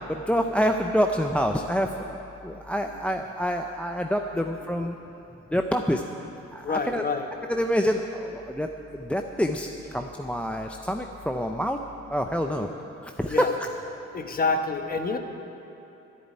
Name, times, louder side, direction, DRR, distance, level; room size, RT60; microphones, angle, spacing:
voice 1, 0.1-5.0 5.5-6.0 6.5-7.0 7.5-8.0 8.3-8.7 8.9-9.7 9.9-11.8 12.1-12.7 13.0-13.5, equal, 5° left, 4 dB, 0.6 m, -26 dB
voice 2, 6.6-7.3 12.5-12.7 13.3-13.5 14.1-15.2, left 4 dB, 30° left, 5 dB, 1.2 m, -27 dB
11.0 x 8.5 x 10.0 m, 3.0 s
cardioid pair, 90°, 30 cm